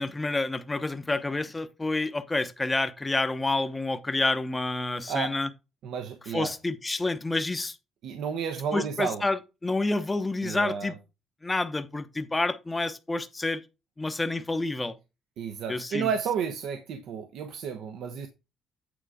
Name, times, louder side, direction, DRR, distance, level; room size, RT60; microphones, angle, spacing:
voice 1, 0.0-5.5 6.3-7.8 8.7-10.9 11.4-13.6 14.0-15.0 15.7-16.1, left 2 dB, 15° left, 0.8 m, -29 dB
voice 2, 5.8-6.5 8.0-9.2 10.4-10.9 15.4-18.3, right 7 dB, 70° right, 1.0 m, -31 dB
9.1 x 3.8 x 4.8 m
cardioid pair, 135°, 0 cm